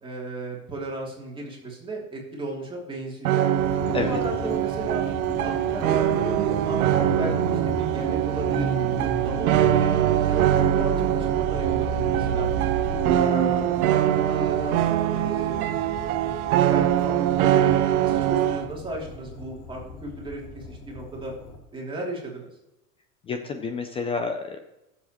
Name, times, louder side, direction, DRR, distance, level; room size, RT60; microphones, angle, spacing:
voice 1, 0.0-3.5 3.9-5.1 5.4-8.9 9.2-9.9 10.3-10.5 10.7-12.5 12.9-14.8 15.1-15.6 16.7-17.7 18.0-21.3 21.7-22.5, right 2 dB, 10° right, -3 dB, 2.9 m, -34 dB
sound 1, 3.2-18.7, right 12 dB, 75° right, 0.9 m, -23 dB
sound 2, 3.6-21.6, left 2 dB, 55° left, 3.3 m, -38 dB
sound 3, 6.2-13.2, right 6 dB, 50° right, 2.1 m, -29 dB
voice 2, 23.2-24.6, left 4 dB, 15° left, 6 dB, 0.3 m, -29 dB
17.0 x 7.3 x 3.0 m, 0.92 s
supercardioid pair, 140°, 43 cm